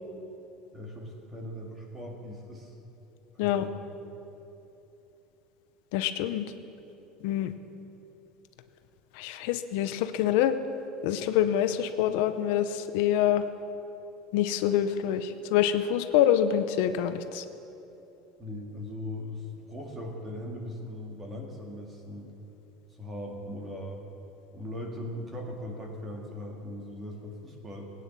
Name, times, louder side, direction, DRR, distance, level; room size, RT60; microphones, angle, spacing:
voice 1, 0.7-2.7 3.3-3.7 18.4-22.3 22.9-24.0 24.5-27.9, left 1 dB, 15° right, 1 dB, 2.0 m, -39 dB
voice 2, 5.9-6.5 7.2-7.5 9.1-10.6 11.0-13.4 14.3-17.4, left 10 dB, 65° left, 9 dB, 0.7 m, -26 dB
20.0 x 9.3 x 7.2 m, 2.9 s
cardioid pair, 170°, 0 cm